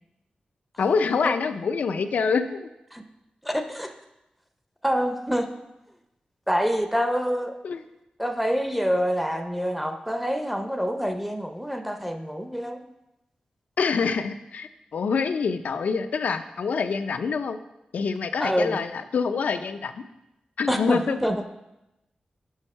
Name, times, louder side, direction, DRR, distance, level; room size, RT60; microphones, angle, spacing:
voice 1, 0.8-2.7 7.6-7.8 13.8-17.6 17.9-20.0 20.6-21.2, left 5 dB, 80° left, 9 dB, 0.4 m, -26 dB
voice 2, 3.4-3.9 4.8-5.5 6.5-7.5 8.2-12.8 18.4-18.8 20.7-21.4, equal, 5° right, 6 dB, 0.5 m, -26 dB
6.4 x 5.5 x 5.4 m, 0.92 s
wide cardioid pair, 145°, 3 cm